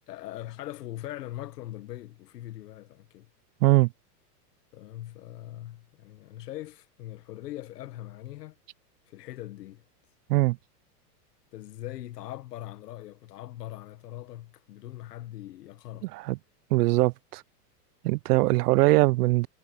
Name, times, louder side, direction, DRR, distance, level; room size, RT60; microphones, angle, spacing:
voice 1, 0.1-3.3 4.7-8.6 9.1-9.8 11.5-16.1, left 14 dB, 85° left, 1.5 m, -41 dB
voice 2, 16.7-17.4 18.0-19.5, right 21 dB, 80° right, 0.5 m, -21 dB
supercardioid pair, 155°, 47 cm